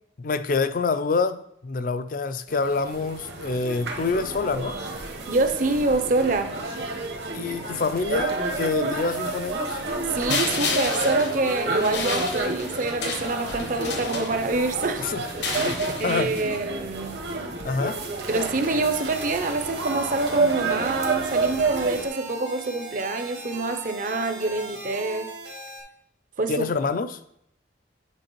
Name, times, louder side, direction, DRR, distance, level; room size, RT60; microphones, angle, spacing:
voice 1, 0.2-4.8 7.3-9.8 15.0-16.5 17.6-18.0 26.5-27.2, left 4 dB, 45° left, 11 dB, 0.4 m, -27 dB
sound 1, 2.5-22.1, right 3 dB, 60° right, 1.1 m, -30 dB
voice 2, 5.3-6.5 10.1-15.2 15.6-17.3 18.3-25.3 26.4-26.7, right 3 dB, 45° right, 8 dB, 0.6 m, -26 dB
sound 2, 10.3-14.7 15.3-16.6, left 4 dB, 70° left, 1.0 m, -32 dB
sound 3, 18.6-25.8, right 2 dB, 80° right, 1.9 m, -39 dB
8.9 x 5.0 x 3.0 m, 0.74 s
head